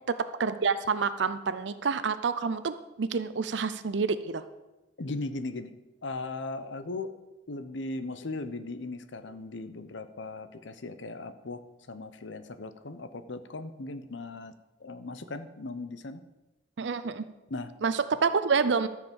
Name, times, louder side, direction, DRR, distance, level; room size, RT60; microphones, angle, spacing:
voice 1, 0.1-4.4 16.8-17.3 17.8-18.9, right 5 dB, 75° right, 12 dB, 0.5 m, -28 dB
voice 2, 5.0-5.7 6.0-7.1 7.5-11.6 11.9-14.5 14.8-16.2 17.5-17.7, left 2 dB, 85° left, 11 dB, 0.8 m, -38 dB
13.0 x 4.9 x 7.1 m, 1.0 s
head